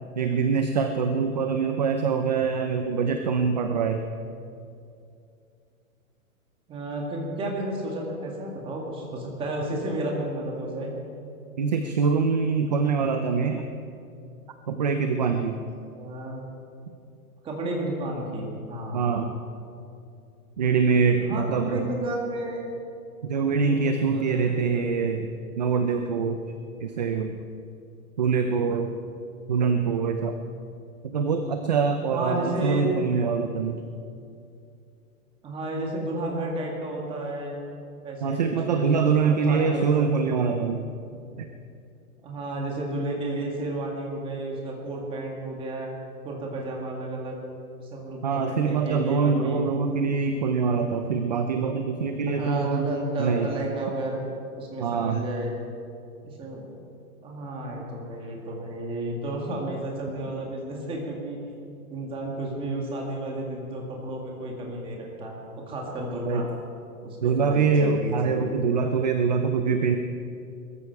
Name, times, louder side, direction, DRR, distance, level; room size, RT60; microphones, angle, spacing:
voice 1, 0.2-4.0 11.6-13.6 14.7-15.6 18.9-19.3 20.6-21.8 23.2-25.3 25.6-26.4 26.8-27.4 28.2-28.9 29.5-30.4 31.0-33.8 38.2-40.8 41.4-41.5 48.2-52.8 53.2-53.5 54.8-55.3 66.3-66.5 67.2-70.0, right 5 dB, 30° right, 7 dB, 0.5 m, -24 dB
voice 2, 6.7-10.9 13.4-13.5 15.9-16.4 17.4-19.3 20.9-22.7 23.5-24.8 32.1-32.9 35.4-37.6 38.0-40.5 42.2-45.9 46.2-47.4 47.8-49.6 52.3-54.3 54.6-55.5 56.2-56.7 57.2-61.4 61.9-66.5 67.0-68.6, right 1 dB, 10° right, -1 dB, 1.9 m, -32 dB
21.5 x 14.0 x 4.6 m, 2.5 s
hypercardioid pair, 165°, 44 cm